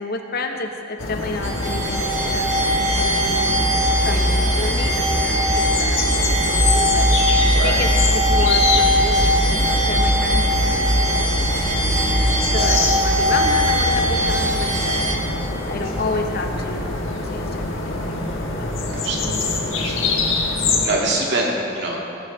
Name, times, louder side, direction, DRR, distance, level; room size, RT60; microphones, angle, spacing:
voice 1, 0.0-3.6 4.0-7.1 7.5-12.0 12.5-15.0 15.7-17.0 17.3-18.1 18.5-18.8 19.3-19.4, left 3 dB, 50° left, 5 dB, 0.8 m, -30 dB
sound 1, 1.0-20.9, left 3 dB, 80° left, 1.5 m, -25 dB
sound 2, 1.4-15.1, equal, 35° right, 1.9 m, -20 dB
voice 2, 18.9-19.5 19.8-20.2 20.8-22.0, right 2 dB, 60° right, -2 dB, 2.1 m, -24 dB
18.0 x 7.5 x 4.7 m, 2.9 s
head